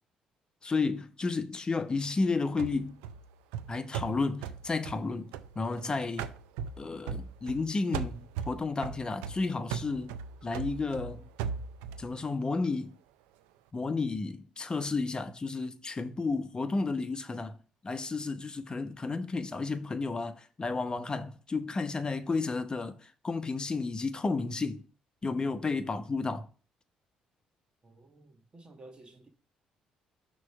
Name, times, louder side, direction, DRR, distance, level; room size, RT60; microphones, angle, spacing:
voice 1, 0.6-3.0 3.7-6.3 6.8-10.2 10.4-11.2 12.0-13.0 13.7-17.5 17.8-24.8 25.2-26.5, left 3 dB, 30° left, 0.9 m, -32 dB
sound 1, 2.6-5.8 6.2-7.7 7.9-12.1, right 7 dB, 85° right, 0.4 m, -38 dB
voice 2, 27.8-29.3, right 2 dB, 35° right, 1.4 m, -53 dB
6.2 x 3.2 x 5.8 m
supercardioid pair, 60°, 3 cm